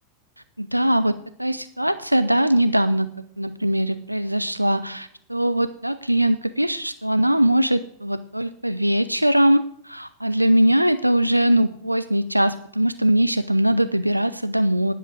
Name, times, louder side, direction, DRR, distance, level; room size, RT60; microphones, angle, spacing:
voice 1, 0.6-3.1 3.4-14.9, right 1 dB, 90° right, 11 dB, 0.4 m, -21 dB
10.0 x 6.1 x 7.8 m, 0.65 s
figure-of-eight pair, 90°, 0 cm